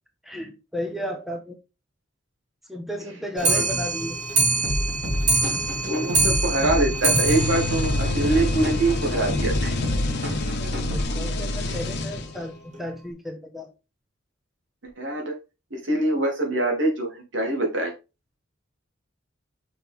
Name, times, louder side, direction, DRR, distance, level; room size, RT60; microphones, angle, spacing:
voice 1, 0.2-1.5 2.7-4.2 10.6-13.7, equal, ahead, 3 dB, 1.3 m, -33 dB
Clock, 3.4-8.9 9.2-9.3 9.6-9.7 10.0-10.1 10.4-10.5 11.2-11.3 12.0-12.1 12.7-12.8, right 3 dB, 40° right, 2.4 m, -25 dB
sound 1, 4.6-11.0, left 1 dB, 55° right, 3.6 m, -28 dB
voice 2, 5.7-9.9 11.6-11.8 15.0-15.4 15.7-17.9, right 2 dB, 75° right, 2 dB, 2.8 m, -24 dB
sound 2, 7.1-12.6, left 2 dB, 60° left, 1.3 m, -28 dB
6.7 x 6.1 x 3.6 m, 0.27 s
head